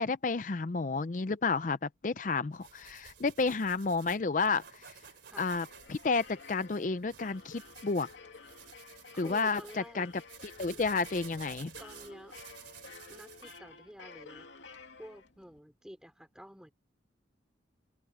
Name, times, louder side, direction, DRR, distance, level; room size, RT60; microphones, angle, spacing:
voice 1, 0.0-4.8 5.4-8.1 9.2-9.6 10.0-10.1 10.6-11.7, left 4 dB, 45° left, 0.5 m, -31 dB
sound 1, 2.5-13.6, right 9 dB, 80° right, 3.1 m, -53 dB
sound 2, 5.1-15.6, left 4 dB, 85° left, 2.6 m, -52 dB
voice 2, 9.1-10.1 11.8-12.4 13.1-14.5 15.0-16.7, equal, 5° right, 3.2 m, -49 dB
head